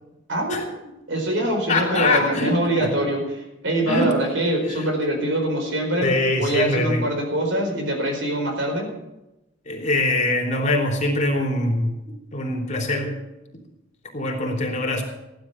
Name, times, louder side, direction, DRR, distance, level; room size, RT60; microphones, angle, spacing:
voice 1, 0.3-0.6 1.1-8.9, right 1 dB, 75° right, 2 dB, 4.6 m, -24 dB
voice 2, 1.7-2.9 3.9-4.1 4.7-4.8 6.0-7.0 9.6-12.0 12.3-13.1 14.1-15.0, left 2 dB, 40° left, 0 dB, 3.3 m, -23 dB
15.5 x 11.0 x 5.8 m, 0.99 s
head